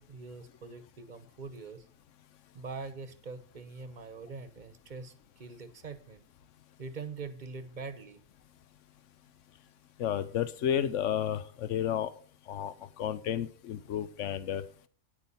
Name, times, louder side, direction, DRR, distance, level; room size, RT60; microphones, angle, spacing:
voice 1, 0.0-1.9 2.5-6.2 6.8-8.2, right 4 dB, 40° right, 12 dB, 1.0 m, -43 dB
voice 2, 10.0-12.1 12.5-14.6, left 10 dB, 80° left, 14 dB, 1.1 m, -32 dB
9.6 x 8.7 x 5.4 m, 0.43 s
omnidirectional pair, 1.3 m